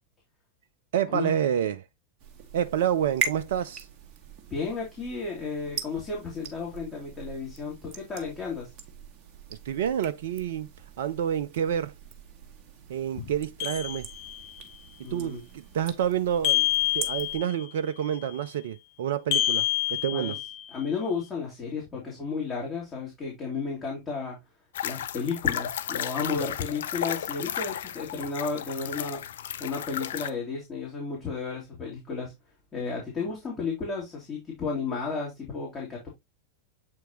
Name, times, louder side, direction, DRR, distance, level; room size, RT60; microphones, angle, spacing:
voice 1, 0.9-1.8 2.5-3.9 9.7-10.7 11.0-11.9 12.9-14.1 15.0-16.7 16.9-20.4, right 9 dB, 55° right, 0.4 m, -28 dB
sound 1, 2.2-17.4, right 6 dB, 35° right, 1.4 m, -41 dB
voice 2, 4.5-8.7 13.2-13.3 15.0-15.4 20.1-20.3 20.7-24.4 24.8-29.2 29.6-32.3 32.7-36.1, left 4 dB, 20° left, 2.7 m, -33 dB
sound 2, 13.6-14.6 16.4-17.7 19.3-20.8, left 14 dB, 45° left, 0.9 m, -27 dB
sound 3, 24.7-30.3, left 10 dB, 60° left, 0.5 m, -33 dB
7.8 x 4.4 x 2.9 m
figure-of-eight pair, 90°, 0 cm